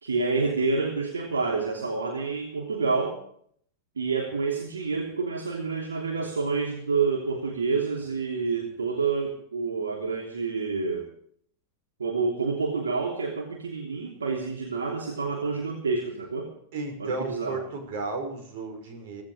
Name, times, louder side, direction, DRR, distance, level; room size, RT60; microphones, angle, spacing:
voice 1, 0.0-3.2 4.0-11.1 12.0-16.5 17.0-17.6, right 4 dB, 70° right, 1 dB, 3.1 m, -28 dB
voice 2, 16.7-19.2, right 3 dB, 50° right, 5 dB, 5.7 m, -34 dB
17.5 x 16.5 x 5.0 m, 0.62 s
figure-of-eight pair, 90°, 0 cm